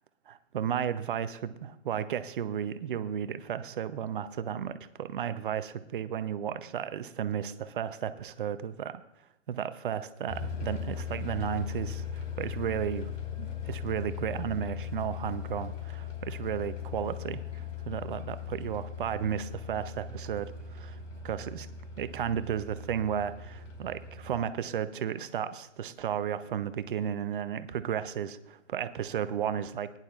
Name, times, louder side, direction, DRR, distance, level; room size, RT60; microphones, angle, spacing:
voice 1, 0.3-9.0 9.5-13.1 13.4-21.0 21.2-21.7 22.0-29.9, right 9 dB, 45° right, 13 dB, 0.7 m, -34 dB
sound 1, 10.3-24.4, left 7 dB, 80° left, 3.1 m, -39 dB
18.5 x 10.5 x 2.4 m, 0.90 s
hypercardioid pair, 145°, 38 cm